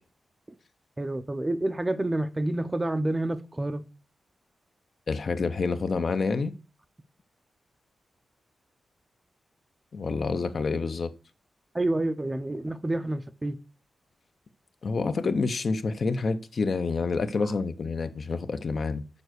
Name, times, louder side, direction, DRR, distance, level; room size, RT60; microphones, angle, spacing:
voice 1, 1.0-3.8 11.7-13.6, right 1 dB, 15° right, 0.6 m, -28 dB
voice 2, 5.1-6.5 9.9-11.1 14.8-19.0, left 4 dB, 50° left, 0.7 m, -28 dB
7.0 x 5.4 x 6.3 m
wide cardioid pair, 130°, 0 cm